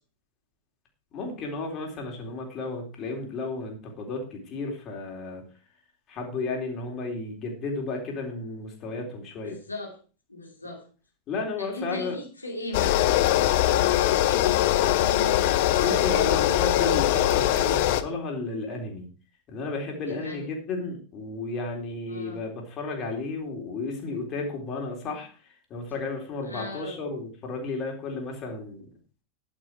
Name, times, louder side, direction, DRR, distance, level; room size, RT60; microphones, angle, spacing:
voice 1, 1.1-5.4 6.1-9.6 11.3-12.2 15.8-19.1 19.5-25.3 25.7-28.8, left 3 dB, 35° left, 1 dB, 4.0 m, -33 dB
voice 2, 9.4-9.9 10.3-10.8 11.6-16.7 20.1-20.6 22.1-22.5 26.4-27.0, left 2 dB, 85° left, -1 dB, 2.9 m, -38 dB
sound 1, 12.7-18.0, left 13 dB, 50° left, 0.9 m, -22 dB
11.0 x 10.0 x 4.6 m, 0.37 s
figure-of-eight pair, 90°, 0 cm